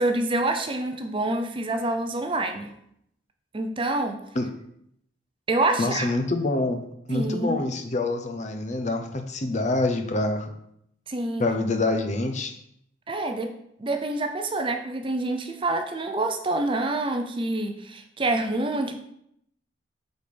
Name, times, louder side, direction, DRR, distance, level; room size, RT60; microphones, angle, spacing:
voice 1, 0.0-2.7 3.5-4.2 5.5-6.1 7.1-7.6 11.1-11.4 13.1-13.5 13.8-19.0, right 2 dB, 25° right, 6 dB, 0.5 m, -27 dB
voice 2, 5.8-10.5 11.4-12.5, left 2 dB, 40° left, 6 dB, 0.7 m, -26 dB
8.4 x 4.2 x 3.4 m, 0.74 s
head